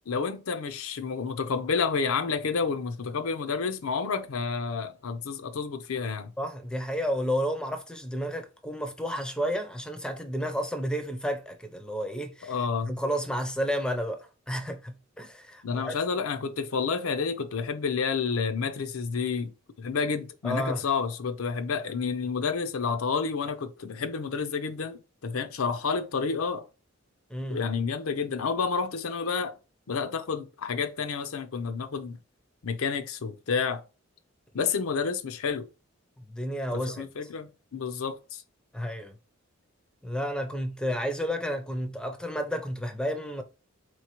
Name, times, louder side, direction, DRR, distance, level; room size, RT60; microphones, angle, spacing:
voice 1, 0.1-6.3 12.4-12.9 15.6-19.5 19.8-26.7 27.5-29.5 29.9-32.2 32.6-33.8 34.5-35.7 36.7-38.4, left 5 dB, 85° left, 0.6 m, -30 dB
voice 2, 6.4-12.5 12.8-16.0 20.4-20.9 27.3-27.6 36.3-37.1 38.7-39.2 40.0-43.4, equal, 5° left, 0.4 m, -31 dB
4.1 x 3.1 x 2.9 m
head